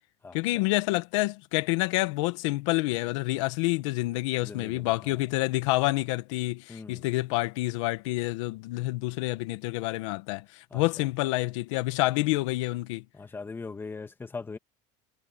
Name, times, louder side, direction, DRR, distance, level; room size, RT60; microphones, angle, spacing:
voice 1, 0.3-13.0, left 20 dB, 80° left, 1.7 m, -28 dB
voice 2, 4.4-5.2 6.7-7.0 10.7-10.8 13.1-14.6, left 4 dB, 15° left, 1.9 m, -40 dB
supercardioid pair, 135°, 16 cm